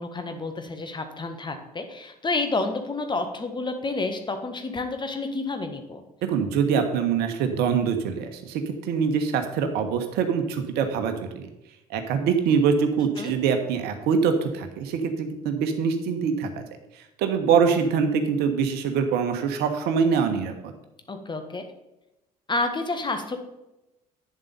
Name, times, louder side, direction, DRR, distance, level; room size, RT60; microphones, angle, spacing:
voice 1, 0.0-6.0 13.2-13.3 21.1-21.7 22.5-23.4, left 3 dB, 25° left, 7 dB, 1.6 m, -29 dB
voice 2, 6.2-11.5 11.9-16.6 16.9-20.7, right 6 dB, 55° right, 6 dB, 1.4 m, -24 dB
9.6 x 7.4 x 5.4 m, 0.95 s
figure-of-eight pair, 60°, 20 cm